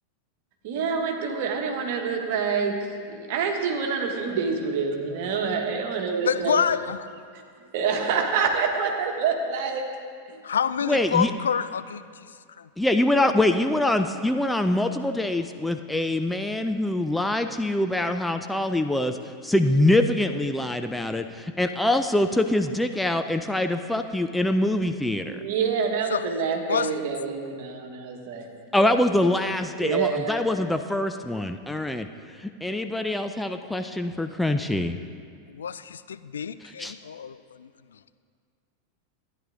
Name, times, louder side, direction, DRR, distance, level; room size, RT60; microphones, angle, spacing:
voice 1, 0.6-6.6 7.3-9.9 10.3-10.4 25.3-28.6 29.8-30.4, right 5 dB, 55° right, 2 dB, 1.4 m, -27 dB
voice 2, 6.2-7.0 10.4-12.0 12.6-12.7 26.1-26.2 26.7-26.9 35.5-37.7, left 7 dB, 70° left, 13 dB, 0.3 m, -27 dB
voice 3, 10.8-11.3 12.8-19.2 19.4-25.4 28.7-32.1 32.4-35.0 36.6-36.9, left 1 dB, 5° left, 7 dB, 0.4 m, -24 dB
13.5 x 10.0 x 3.7 m, 2.1 s
figure-of-eight pair, 90°, 0 cm